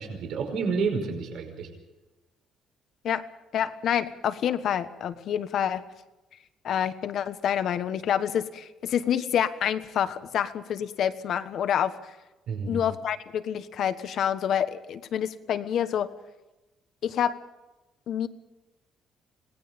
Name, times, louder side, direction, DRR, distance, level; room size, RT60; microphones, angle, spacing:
voice 1, 0.0-1.7 12.5-12.8, right 4 dB, 70° right, 3 dB, 5.2 m, -29 dB
voice 2, 3.5-5.8 6.6-12.1 12.7-16.1 17.0-17.4 18.1-18.3, left 9 dB, 60° left, 11 dB, 1.3 m, -27 dB
26.5 x 19.0 x 5.4 m, 1.0 s
cardioid pair, 120°, 0 cm